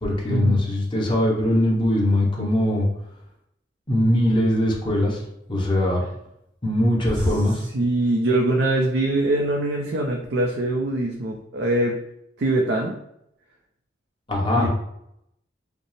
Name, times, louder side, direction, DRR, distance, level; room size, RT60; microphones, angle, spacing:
voice 1, 0.0-2.9 3.9-5.2 5.5-6.0 6.6-7.6 14.3-14.7, left 1 dB, 30° left, -3 dB, 1.0 m, -21 dB
voice 2, 7.6-12.0 12.4-13.0 14.6-14.7, right 1 dB, 65° right, 1 dB, 0.4 m, -23 dB
5.1 x 2.0 x 3.2 m, 0.78 s
head